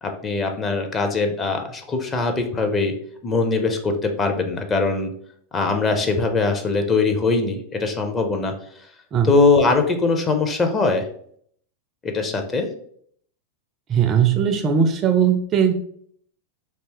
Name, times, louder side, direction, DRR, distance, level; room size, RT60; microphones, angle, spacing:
voice 1, 0.0-2.9 3.2-5.1 5.5-8.5 9.2-11.1 12.0-12.7, left 3 dB, 20° left, 4 dB, 0.6 m, -21 dB
voice 2, 13.9-15.7, right 7 dB, 30° right, 6 dB, 0.4 m, -19 dB
3.3 x 2.7 x 2.8 m, 0.63 s
figure-of-eight pair, 90°, 0 cm